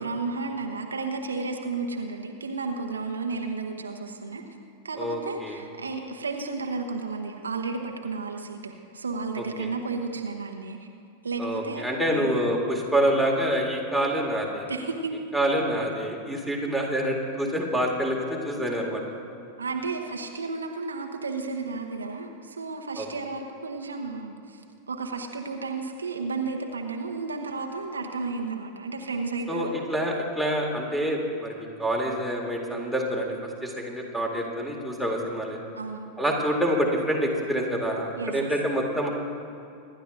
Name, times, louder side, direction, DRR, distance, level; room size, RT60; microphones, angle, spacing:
voice 1, 0.0-4.4 4.8-10.9 11.2-12.3 14.7-15.1 19.6-29.7 35.8-36.1 38.2-38.5, right 4 dB, 75° right, 3 dB, 1.0 m, -33 dB
voice 2, 5.0-5.6 9.6-9.7 11.4-14.7 15.3-19.0 23.0-23.1 29.5-31.5 31.8-33.3 33.6-35.6 36.2-39.1, equal, ahead, 0 dB, 2.3 m, -27 dB
25.0 x 11.5 x 2.6 m, 2.5 s
figure-of-eight pair, 90°, 0 cm